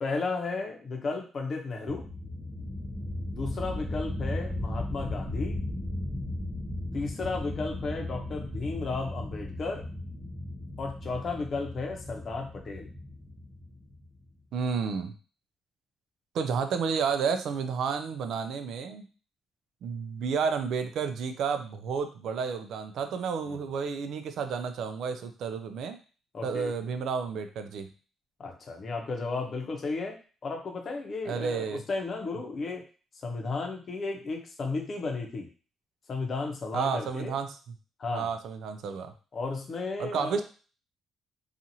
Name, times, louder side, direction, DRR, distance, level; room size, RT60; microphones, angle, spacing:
voice 1, 0.0-2.1 3.3-5.6 6.9-9.8 10.8-12.9 23.4-23.6 26.3-26.7 28.4-30.1 30.4-32.8 33.2-35.5 36.1-37.3 38.0-38.3 39.3-40.4, left 3 dB, 45° left, 2 dB, 0.7 m, -34 dB
sound 1, 1.9-14.3, left 1 dB, 5° left, 0.6 m, -36 dB
voice 2, 14.5-15.1 16.3-19.0 19.8-26.0 26.4-27.9 31.3-31.8 36.7-37.6 38.1-39.1 40.0-40.4, right 6 dB, 75° right, 8 dB, 0.4 m, -31 dB
2.8 x 2.4 x 2.7 m, 0.37 s
cardioid pair, 90°, 0 cm